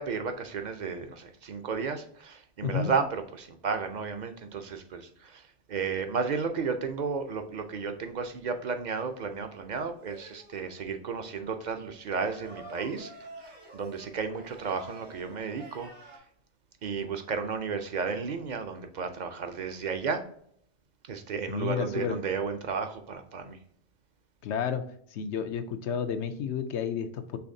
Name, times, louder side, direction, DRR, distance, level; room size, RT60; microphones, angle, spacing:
voice 1, 0.0-13.1 13.4-15.9 16.8-20.2 21.1-23.6, right 5 dB, 50° right, 7 dB, 0.6 m, -33 dB
sound 1, 9.9-10.7 12.0-16.2, right 2 dB, 80° right, 1.8 m, -48 dB
voice 2, 21.5-22.1 24.4-24.8 25.1-27.4, left 7 dB, 80° left, 8 dB, 0.9 m, -31 dB
5.7 x 3.4 x 2.6 m, 0.67 s
omnidirectional pair, 1.2 m